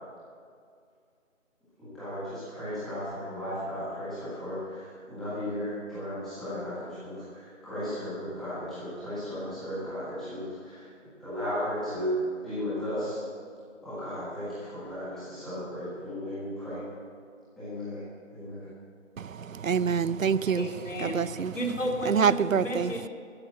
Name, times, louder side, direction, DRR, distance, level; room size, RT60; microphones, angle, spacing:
voice 1, 1.8-10.9 11.2-13.2 13.8-16.8 17.6-18.0 18.3-18.7, equal, ahead, 1.6 m, -35 dB
voice 2, 19.2-20.7 21.0-21.5 22.1-22.9, right 6 dB, 85° right, 0.6 m, -26 dB
voice 3, 20.5-21.2 21.5-23.1, equal, 70° left, 3.3 m, -33 dB
13.5 x 9.8 x 7.8 m
figure-of-eight pair, 165°, 39 cm